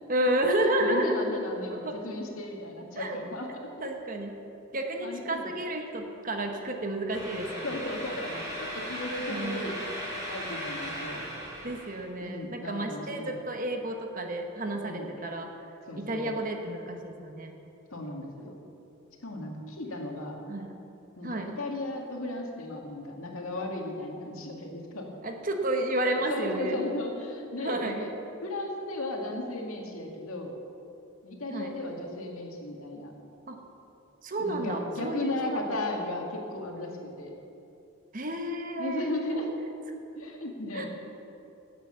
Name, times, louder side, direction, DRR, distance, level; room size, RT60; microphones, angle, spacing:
voice 1, 0.1-1.3 1.7-2.0 2.9-3.2 3.8-4.3 4.7-7.8 9.3-9.8 11.6-15.5 16.0-17.5 20.5-20.7 21.2-21.5 25.2-26.8 27.6-28.0 31.5-31.7 33.5-33.6 34.2-35.7 38.1-39.4 40.7-40.9, right 1 dB, 40° right, 3 dB, 1.1 m, -31 dB
voice 2, 0.8-3.5 5.0-5.5 7.6-9.8 10.3-11.2 12.2-13.4 14.7-15.3 15.9-16.3 17.9-18.5 19.2-20.4 21.2-25.1 26.0-28.1 28.4-30.5 31.2-33.1 34.4-36.9 37.2-37.3 38.8-39.6 40.2-40.9, left 1 dB, 80° left, 1 dB, 2.1 m, -35 dB
sound 1, 7.1-12.1, equal, 15° right, 3.6 m, -37 dB
17.0 x 8.0 x 7.0 m, 2.8 s
head